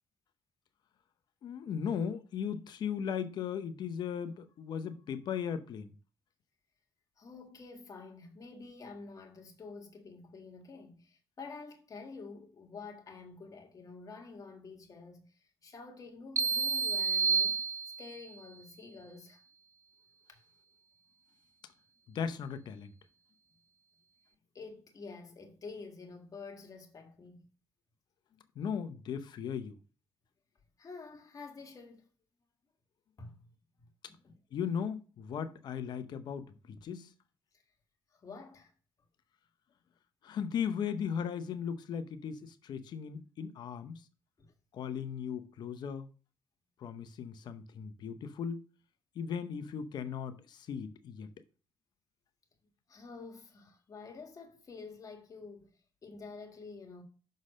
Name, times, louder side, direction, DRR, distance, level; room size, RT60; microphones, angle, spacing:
voice 1, 1.4-5.9 22.1-22.9 28.6-29.8 34.5-37.1 40.2-44.0 44.7-46.1 46.8-48.6 49.1-51.3, left 7 dB, 70° left, 0.8 m, -37 dB
voice 2, 7.2-17.7 18.0-19.4 20.3-20.4 24.5-27.5 30.8-32.1 33.2-33.4 33.8-34.4 38.1-38.7 44.4-44.5 52.9-57.0, left 4 dB, 50° left, 1.8 m, -49 dB
sound 1, 16.4-18.3, right 6 dB, 40° right, 0.4 m, -30 dB
6.5 x 4.0 x 6.3 m
supercardioid pair, 60°, 8 cm